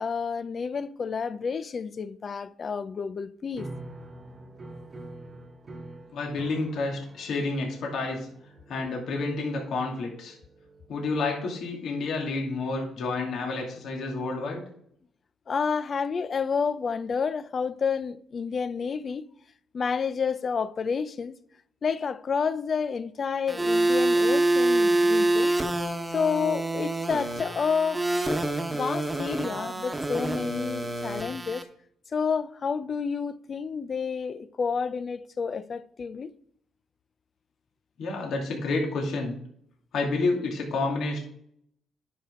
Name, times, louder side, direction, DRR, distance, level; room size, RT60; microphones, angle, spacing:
voice 1, 0.0-3.7 15.5-19.3 19.7-21.3 21.8-25.5 26.1-28.0 28.7-31.6 32.1-36.3, left 5 dB, 45° left, 0.5 m, -29 dB
sound 1, 3.5-11.9, right 2 dB, 35° right, 1.3 m, -46 dB
voice 2, 6.1-8.3 8.7-10.3 10.9-14.6 38.0-39.3 39.9-41.2, left 3 dB, 70° left, 2.6 m, -29 dB
sound 2, 23.5-31.6, right 2 dB, 15° right, 1.2 m, -26 dB
10.0 x 6.4 x 3.7 m
cardioid pair, 90°, 0 cm